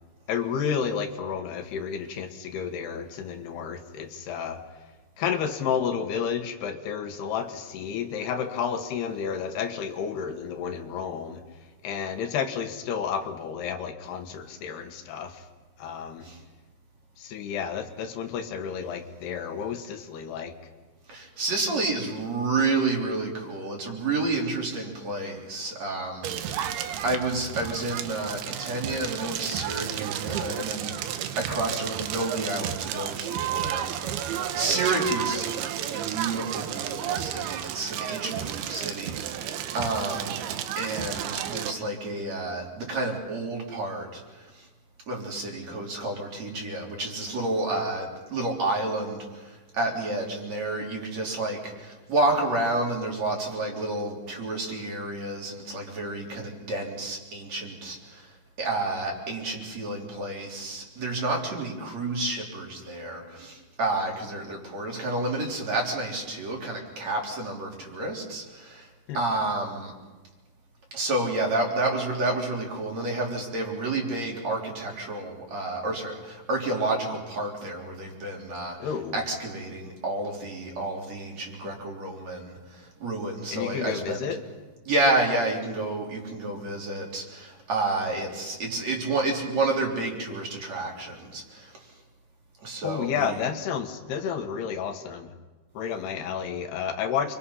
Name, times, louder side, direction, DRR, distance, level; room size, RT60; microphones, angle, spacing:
voice 1, 0.3-4.6 5.2-11.4 11.8-15.4 15.8-16.3 17.2-20.5 69.1-69.2 78.8-79.2 83.5-84.4 92.8-95.3 95.8-97.4, left 7 dB, 80° left, 6 dB, 3.4 m, -31 dB
voice 2, 21.1-26.8 27.0-35.6 35.9-40.4 40.8-44.7 45.1-58.3 58.6-68.9 69.1-69.9 70.9-84.4 84.9-91.7 92.6-93.5, right 2 dB, 45° right, -1 dB, 4.5 m, -30 dB
Crackle, 26.2-41.7, right 10 dB, 80° right, 3.0 m, -32 dB
29.0 x 24.5 x 5.7 m, 1.2 s
omnidirectional pair, 4.7 m